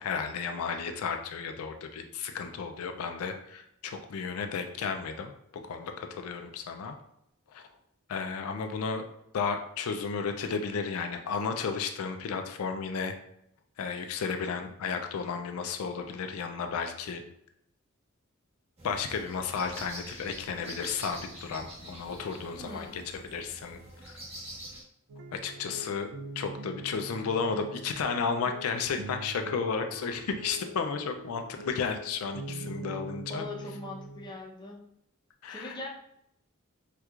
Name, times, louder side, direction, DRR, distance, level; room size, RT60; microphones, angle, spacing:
voice 1, 0.0-7.0 7.5-7.7 8.1-9.0 9.3-13.1 13.8-17.2 18.8-23.8 24.0-24.1 25.3-26.1 26.4-33.5 35.4-35.8, left 5 dB, 85° left, 6 dB, 0.4 m, -33 dB
sound 1, 18.8-24.8, right 1 dB, 30° right, 0.9 m, -45 dB
voice 2, 22.6-23.0 33.3-34.8 35.5-35.9, left 2 dB, 20° left, -2 dB, 0.6 m, -41 dB
sound 2, 25.1-34.4, right 2 dB, 70° right, 0.3 m, -43 dB
4.3 x 2.3 x 2.4 m, 0.75 s
head